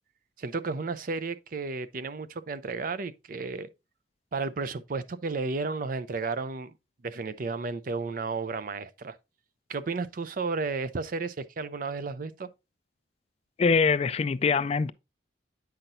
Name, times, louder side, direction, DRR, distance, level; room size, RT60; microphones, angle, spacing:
voice 1, 0.4-3.7 4.3-6.7 7.0-9.2 9.7-12.5, right 4 dB, 50° right, 0.5 m, -33 dB
voice 2, 13.6-14.9, left 5 dB, 35° left, 0.3 m, -23 dB
8.9 x 5.8 x 2.6 m
head